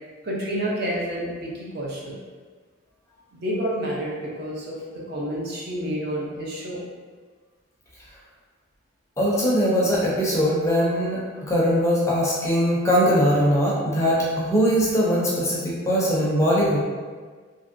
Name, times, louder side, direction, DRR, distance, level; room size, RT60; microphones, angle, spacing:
voice 1, 0.2-2.2 3.3-6.8 9.3-9.4, equal, 50° right, -4 dB, 0.6 m, -29 dB
voice 2, 9.2-11.2 11.5-16.8, equal, 15° left, -6 dB, 0.5 m, -21 dB
3.1 x 2.6 x 2.5 m, 1.5 s
head